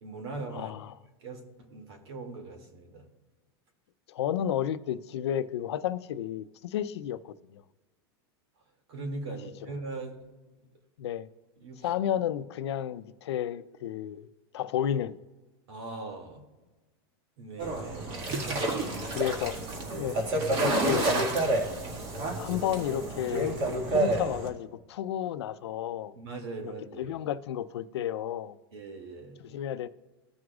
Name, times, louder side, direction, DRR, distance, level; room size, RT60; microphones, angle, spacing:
voice 1, 0.0-0.7 1.2-1.4 1.7-3.0 8.9-10.2 11.6-11.8 15.7-16.4 17.4-18.9 19.8-20.4 26.1-27.2 28.7-29.4, right 3 dB, 85° right, 2.4 m, -40 dB
voice 2, 0.5-0.9 4.1-7.6 11.0-11.3 11.8-14.3 14.5-15.2 19.1-19.6 20.0-20.2 20.6-21.1 22.4-23.6 23.9-26.1 26.6-28.6 29.4-29.9, left 10 dB, 85° left, 0.6 m, -32 dB
sound 1, 17.6-24.5, right 2 dB, 45° right, 2.0 m, -29 dB
16.0 x 6.2 x 2.4 m
supercardioid pair, 135°, 13 cm